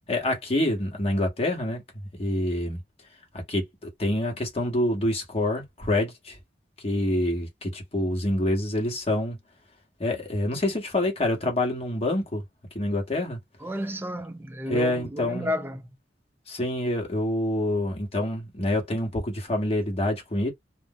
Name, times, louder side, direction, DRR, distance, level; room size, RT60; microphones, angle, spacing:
voice 1, 0.1-1.8 2.2-2.8 3.5-6.4 6.8-9.4 10.0-12.4 12.7-13.4 14.7-15.5 16.5-20.5, left 1 dB, 35° left, 1.2 m, -26 dB
voice 2, 13.6-15.8, equal, 10° right, 0.3 m, -32 dB
2.5 x 2.0 x 3.7 m
head